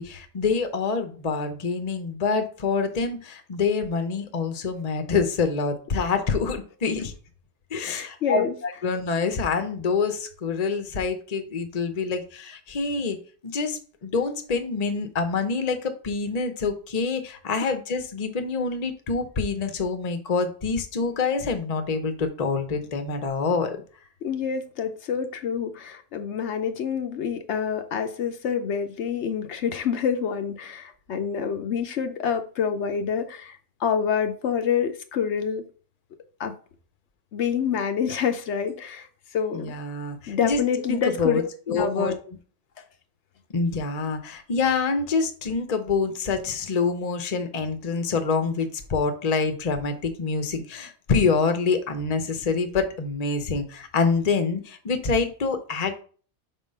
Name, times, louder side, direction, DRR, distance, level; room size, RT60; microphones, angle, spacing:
voice 1, 0.0-7.1 7.7-13.2 13.4-23.8 39.5-40.6 40.9-41.4 41.7-42.1 43.5-56.0, left 4 dB, 40° left, 0.8 m, -26 dB
voice 2, 7.8-8.5 24.2-35.6 36.4-36.5 37.3-39.1 39.3-39.7 40.3-42.2, left 7 dB, 75° left, 1.0 m, -27 dB
5.4 x 3.7 x 5.4 m
omnidirectional pair, 1.2 m